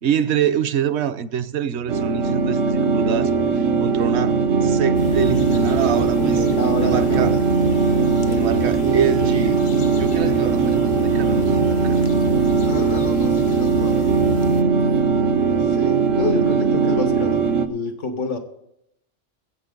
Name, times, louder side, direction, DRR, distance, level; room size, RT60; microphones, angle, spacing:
voice 1, 0.0-6.4 6.8-7.3 8.3-9.6 9.9-12.0, right 8 dB, 65° right, 1.0 m, -25 dB
sound 1, 1.9-17.7, right 5 dB, 85° right, 1.2 m, -19 dB
sound 2, 4.9-14.6, left 7 dB, 55° left, 0.9 m, -32 dB
voice 2, 5.9-7.4 8.3-8.7 12.6-14.3 14.7-15.1 15.5-18.4, left 4 dB, 80° left, 1.8 m, -29 dB
21.5 x 8.5 x 3.8 m
omnidirectional pair, 1.3 m